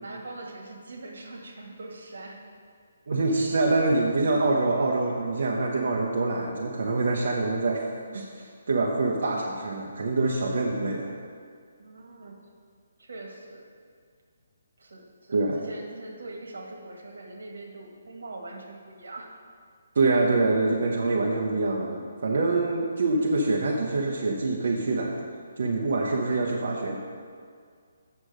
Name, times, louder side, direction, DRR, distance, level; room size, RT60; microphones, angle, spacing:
voice 1, 0.0-2.4 11.8-12.4 13.0-13.7 14.8-19.4, right 2 dB, 75° right, 2 dB, 1.6 m, -42 dB
voice 2, 3.1-7.9 8.1-11.1 15.3-15.6 19.9-25.1 25.6-27.0, right 3 dB, 45° right, -2 dB, 0.8 m, -25 dB
8.2 x 6.5 x 4.9 m, 2.1 s
hypercardioid pair, 180°, 0 cm